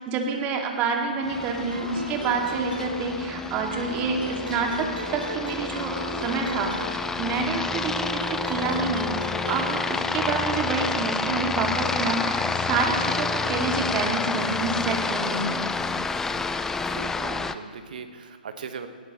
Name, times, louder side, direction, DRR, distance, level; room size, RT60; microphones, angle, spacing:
voice 1, 0.0-9.1 9.4-15.6, right 4 dB, 30° right, 2 dB, 2.2 m, -28 dB
Aircraft, 1.2-17.5, left 4 dB, 10° left, 0.5 m, -29 dB
sound 1, 1.7-3.4 3.7-7.3 7.7-9.7, right 1 dB, 85° right, 2.5 m, -37 dB
voice 2, 13.0-13.5 16.9-18.9, right 5 dB, 60° right, 8 dB, 1.3 m, -39 dB
19.5 x 17.5 x 3.1 m, 2.1 s
figure-of-eight pair, 125°, 5 cm